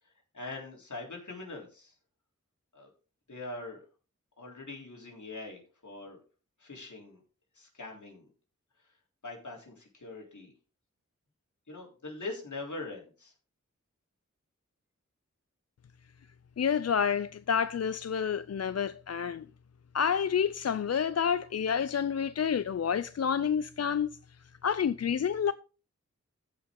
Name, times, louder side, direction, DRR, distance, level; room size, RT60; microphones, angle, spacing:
voice 1, 0.3-1.9 2.7-2.9 3.3-3.8 4.4-6.2 6.6-7.2 7.6-8.3 9.2-10.5 11.7-13.3, left 2 dB, 80° left, 3.7 m, -42 dB
voice 2, 16.6-19.5 19.9-24.1 24.6-25.5, left 7 dB, 55° left, 0.4 m, -29 dB
15.0 x 5.8 x 3.8 m
wide cardioid pair, 45°, 30 cm